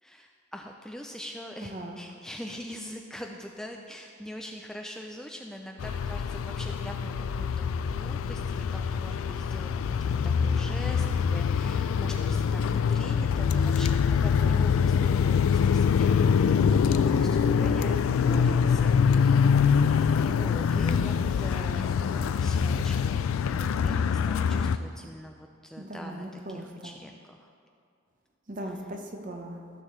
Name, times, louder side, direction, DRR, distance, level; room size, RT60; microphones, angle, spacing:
voice 1, 0.0-9.7 10.0-19.4 20.2-27.5, equal, 5° left, 1 dB, 0.3 m, -43 dB
voice 2, 1.6-2.0 14.4-14.8 25.8-26.9 28.5-29.7, right 1 dB, 40° right, 3 dB, 0.8 m, -39 dB
sound 1, 5.8-24.8, left 6 dB, 85° left, 0.3 m, -24 dB
15.0 x 6.5 x 3.1 m, 2.3 s
head